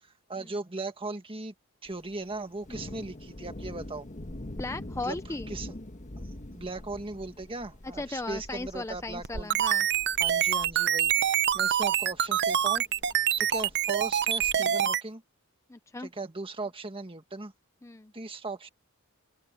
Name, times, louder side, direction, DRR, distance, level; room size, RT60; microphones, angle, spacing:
voice 1, 0.0-1.5 1.8-4.1 5.0-5.2 5.5-5.7 6.3-9.5 10.2-12.8 13.4-15.2 16.0-17.5 18.1-18.7, right 2 dB, 25° right, 1.8 m, -38 dB
Thunder, 1.9-14.6, left 1 dB, 35° left, 1.3 m, -45 dB
voice 2, 4.5-5.5 7.8-9.9 14.6-14.8 15.7-16.1 17.8-18.1, left 2 dB, 15° left, 0.5 m, -37 dB
sound 1, 9.2-15.0, right 10 dB, 50° right, 0.7 m, -25 dB
open air
head